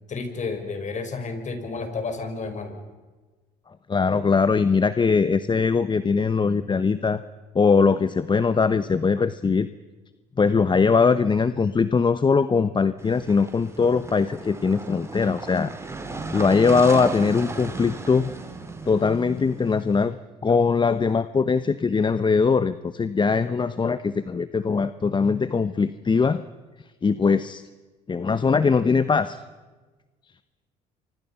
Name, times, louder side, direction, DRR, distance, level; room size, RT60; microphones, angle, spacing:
voice 1, 0.1-2.8, left 4 dB, 45° left, 7 dB, 5.4 m, -31 dB
voice 2, 3.9-7.2 7.5-9.7 10.4-15.7 16.3-18.3 18.9-20.2 20.4-26.4 27.0-27.6 28.1-29.4, left 5 dB, 25° left, 13 dB, 1.0 m, -21 dB
sound 1, 13.0-20.0, right 3 dB, 15° right, 5.0 m, -35 dB
29.0 x 25.0 x 5.8 m, 1.3 s
supercardioid pair, 80°, 18 cm